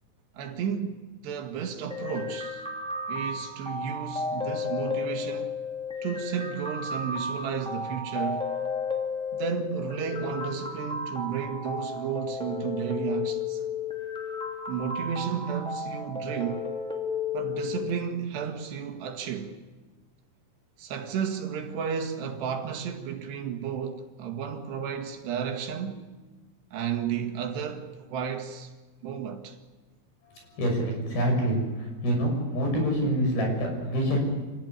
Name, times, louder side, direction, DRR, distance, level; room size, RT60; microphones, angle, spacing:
voice 1, 0.3-2.7 3.1-5.6 6.0-8.5 9.3-13.6 14.7-16.7 17.3-19.6 20.8-26.0 26.7-28.7 29.0-29.6, right 7 dB, 65° right, 3.7 m, -33 dB
sound 1, 1.9-17.9, left 4 dB, ahead, 1.6 m, -33 dB
voice 2, 30.6-34.3, equal, 50° left, 8.3 m, -26 dB
27.0 x 16.5 x 9.6 m
omnidirectional pair, 5.5 m